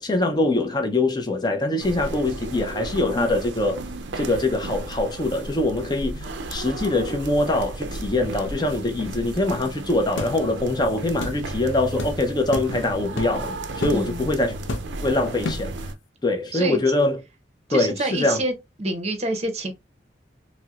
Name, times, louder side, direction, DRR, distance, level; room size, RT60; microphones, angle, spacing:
voice 1, 0.0-3.8 4.2-14.5 15.0-15.7 16.2-17.2 17.7-18.4, left 2 dB, 20° left, 0.5 m, -23 dB
sound 1, 1.8-15.9, right 2 dB, 70° right, 0.4 m, -34 dB
sound 2, 10.2-10.4 11.2-11.4 12.0-12.1 12.5-12.7 13.2-13.4 13.8-14.0 14.7-15.0 15.4-15.7, left 2 dB, 85° left, 0.6 m, -29 dB
voice 2, 13.9-14.3 16.5-16.8 17.7-18.5 18.8-19.7, right 2 dB, 35° right, 0.6 m, -27 dB
4.2 x 2.0 x 2.3 m
head